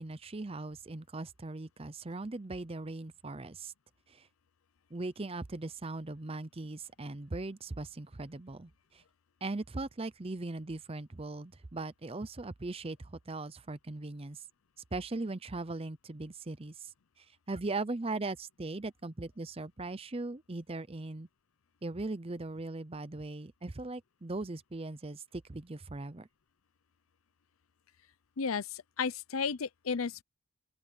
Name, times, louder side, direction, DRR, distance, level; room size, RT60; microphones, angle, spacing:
voice 1, 0.0-3.7 4.1-4.3 4.9-9.0 9.4-14.4 14.9-16.9 17.2-21.3 21.8-26.3, right 2 dB, 30° right, 0.7 m, -39 dB
voice 2, 28.4-30.2, left 5 dB, 90° left, 0.7 m, -33 dB
open air
head